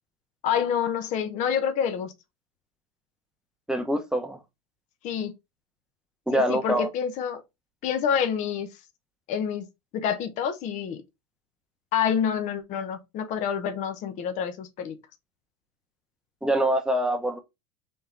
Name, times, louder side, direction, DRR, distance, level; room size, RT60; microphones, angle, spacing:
voice 1, 0.4-2.1 5.0-5.3 6.3-7.4 7.8-8.7 9.3-9.7 9.9-11.0 11.9-15.0, left 8 dB, 45° left, 0.7 m, -27 dB
voice 2, 3.7-4.4 6.3-6.9 16.4-17.4, right 1 dB, 5° right, 0.8 m, -24 dB
3.6 x 2.9 x 3.6 m
supercardioid pair, 105°, 17 cm